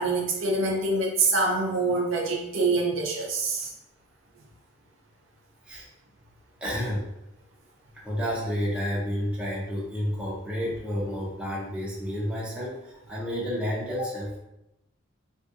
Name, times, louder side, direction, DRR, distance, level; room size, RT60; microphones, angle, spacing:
voice 1, 0.0-3.7, right 3 dB, 60° right, -1 dB, 0.6 m, -25 dB
voice 2, 6.6-7.1 8.0-14.4, equal, 5° right, -6 dB, 0.6 m, -30 dB
3.7 x 2.6 x 2.4 m, 0.89 s
head